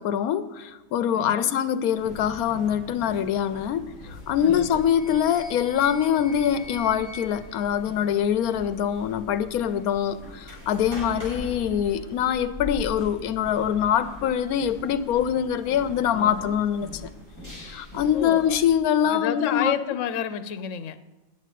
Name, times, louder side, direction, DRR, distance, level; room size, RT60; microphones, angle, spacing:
voice 1, 0.0-3.9 4.3-16.9 17.5-19.8, left 9 dB, 90° left, 1.1 m, -24 dB
voice 2, 1.1-1.6 4.4-4.8 16.1-16.6 18.1-18.6 19.0-21.0, left 9 dB, 65° left, 1.0 m, -31 dB
sound 1, 1.9-18.7, left 1 dB, 75° right, 6.2 m, -42 dB
sound 2, 4.3-8.6, left 3 dB, ahead, 2.2 m, -45 dB
9.2 x 7.9 x 9.2 m
omnidirectional pair, 1.5 m